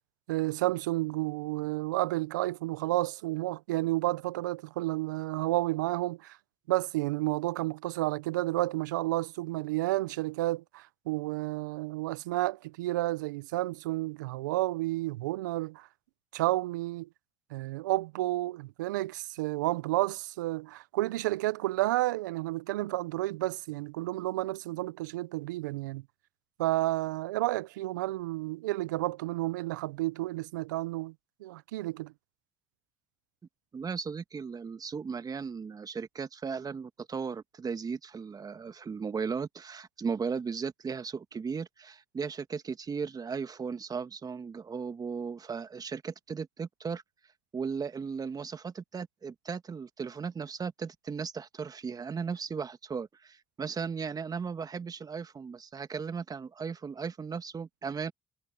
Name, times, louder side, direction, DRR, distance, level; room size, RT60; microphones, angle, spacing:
voice 1, 0.3-6.4 6.7-15.9 16.3-17.1 17.5-26.0 26.6-31.1 31.4-32.1, right 18 dB, 90° right, 0.6 m, -31 dB
voice 2, 33.7-47.0 47.5-58.1, right 5 dB, 40° right, 1.7 m, -36 dB
hypercardioid pair, 50°, 10 cm